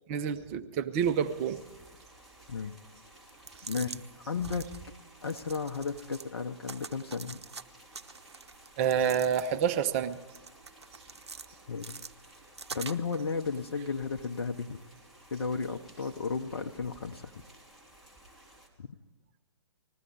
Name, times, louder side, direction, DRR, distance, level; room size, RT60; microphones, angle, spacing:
voice 1, 0.1-1.6 8.8-10.2, right 8 dB, 30° right, 7 dB, 0.8 m, -28 dB
sound 1, 1.0-18.7, right 1 dB, ahead, 3.2 m, -56 dB
sound 2, 3.3-4.0 4.4-4.8 5.2-6.3 6.6-7.6 7.9-9.7 10.1-11.5 11.8-13.2, right 5 dB, 70° right, 0.8 m, -45 dB
voice 2, 3.6-4.7 5.2-7.4 11.7-12.0 12.7-14.8 15.3-17.3 18.8-18.9, left 5 dB, 60° left, 6 dB, 0.8 m, -34 dB
20.0 x 15.0 x 4.7 m, 1.0 s
figure-of-eight pair, 125°, 15 cm